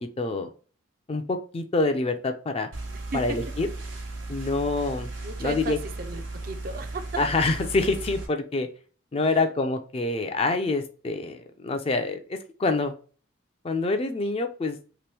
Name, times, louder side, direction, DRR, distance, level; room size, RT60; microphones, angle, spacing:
voice 1, 0.2-0.5 1.1-2.7 3.1-3.7 4.3-5.1 5.4-5.8 7.2-8.7 9.1-12.9 13.6-14.8, left 3 dB, 30° left, 7 dB, 0.3 m, -26 dB
sound 1, 2.7-8.3, right 2 dB, 70° right, 1.1 m, -36 dB
voice 2, 3.1-3.5 5.2-7.2 9.3-9.4, right 3 dB, 45° right, 8 dB, 0.4 m, -35 dB
3.0 x 3.0 x 3.2 m, 0.39 s
head